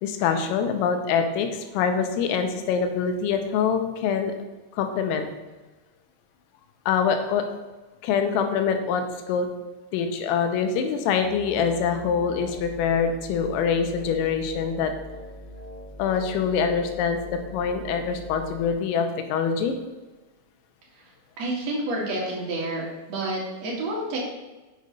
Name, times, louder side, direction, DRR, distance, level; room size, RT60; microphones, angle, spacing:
voice 1, 0.0-4.4 4.7-5.3 6.9-7.5 8.0-9.5 9.9-14.9 16.0-19.8, left 6 dB, 90° left, 6 dB, 3.5 m, -25 dB
sound 1, 11.2-18.7, equal, 60° right, 2.4 m, -41 dB
voice 2, 20.9-22.8 23.1-24.2, right 2 dB, 45° right, -3 dB, 2.4 m, -29 dB
7.9 x 6.6 x 5.4 m, 1.2 s
omnidirectional pair, 5.7 m